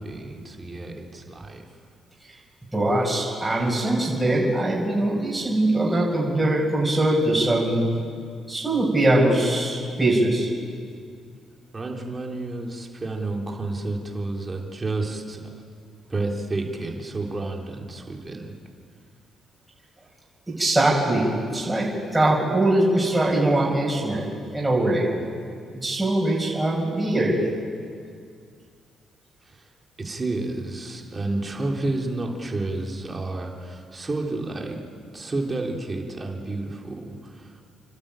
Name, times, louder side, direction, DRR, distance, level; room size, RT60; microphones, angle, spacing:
voice 1, 0.0-1.6 11.7-15.4 16.1-18.5 29.5-29.6 30.0-34.8 35.1-37.5, right 2 dB, 25° right, 0 dB, 3.5 m, -30 dB
voice 2, 2.7-7.8 8.5-10.5 20.5-21.9 22.1-25.1 25.7-27.4, right 1 dB, 10° right, -4 dB, 6.1 m, -22 dB
30.0 x 12.0 x 9.1 m, 2.2 s
cardioid pair, 90°, 0 cm